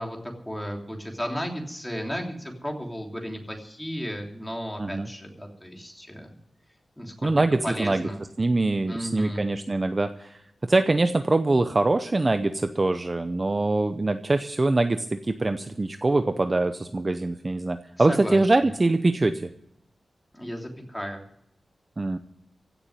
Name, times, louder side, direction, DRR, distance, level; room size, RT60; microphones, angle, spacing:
voice 1, 0.0-6.3 7.0-7.4 7.6-8.2 8.8-9.4 18.0-18.4 20.3-21.2, equal, 5° left, 1 dB, 3.1 m, -34 dB
voice 2, 4.8-5.1 7.2-8.1 8.4-19.5 22.0-22.2, right 2 dB, 25° right, 8 dB, 0.6 m, -23 dB
16.5 x 7.1 x 9.8 m, 0.74 s
wide cardioid pair, 165°, 0 cm